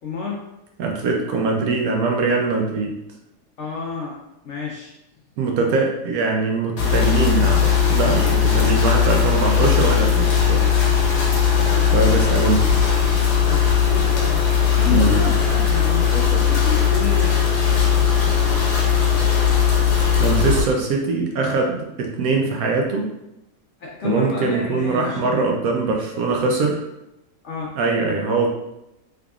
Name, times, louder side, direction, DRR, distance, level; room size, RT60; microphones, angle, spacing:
voice 1, 0.0-0.4 3.6-4.2 4.4-4.9 8.2-8.4 11.1-12.4 13.4-17.5 23.8-25.5 27.4-27.7, left 4 dB, 65° left, -4 dB, 0.7 m, -30 dB
voice 2, 0.8-2.9 5.4-10.6 11.9-12.6 14.9-15.2 20.2-23.1 24.0-26.8 27.8-28.5, right 3 dB, 70° right, 1 dB, 0.9 m, -22 dB
sound 1, 6.8-20.6, left 7 dB, 85° left, 1.4 m, -18 dB
3.4 x 3.4 x 2.3 m, 0.88 s
omnidirectional pair, 1.7 m